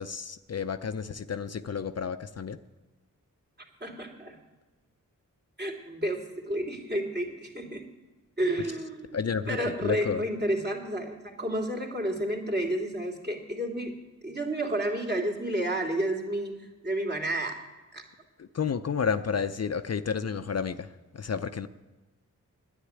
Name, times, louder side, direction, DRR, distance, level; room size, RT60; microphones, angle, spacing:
voice 1, 0.0-2.6 9.1-10.2 18.4-21.7, left 6 dB, 50° left, 10 dB, 0.6 m, -31 dB
voice 2, 3.8-4.3 5.6-7.9 8.4-9.2 9.5-13.9 14.2-17.6 17.9-18.0, right 1 dB, 30° right, 1 dB, 3.0 m, -31 dB
10.0 x 8.8 x 9.7 m, 1.2 s
cardioid pair, 45°, 33 cm